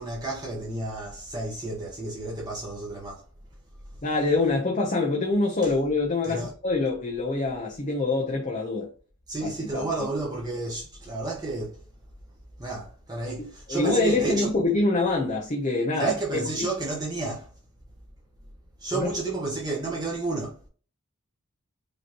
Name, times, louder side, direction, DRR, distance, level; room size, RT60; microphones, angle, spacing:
voice 1, 0.0-3.2 6.2-6.5 9.3-11.8 12.6-14.5 16.0-17.5 18.8-20.6, right 2 dB, 20° right, 1.1 m, -31 dB
voice 2, 4.0-8.9 9.4-10.1 13.7-16.1 16.6-16.7 18.9-19.1, left 3 dB, 35° left, 0.8 m, -25 dB
5.1 x 3.1 x 2.9 m
head